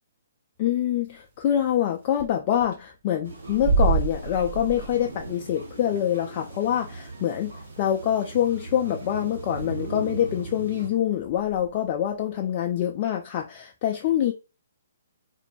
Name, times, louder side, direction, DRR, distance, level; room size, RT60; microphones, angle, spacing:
voice 1, 0.6-14.3, left 10 dB, 35° left, 0.3 m, -25 dB
sound 1, 1.4-1.5 1.8-1.9 2.1-2.3 2.6-2.8 3.4-5.3 5.9-6.0 6.8-6.9 7.9-8.0 8.2-8.4 8.7-9.0 9.5-9.7 10.0-10.2 11.1-12.1, right 4 dB, 45° right, 1.1 m, -27 dB
sound 2, 3.2-10.9, right 3 dB, 65° right, 1.2 m, -39 dB
2.6 x 2.1 x 2.9 m
figure-of-eight pair, 130°, 0 cm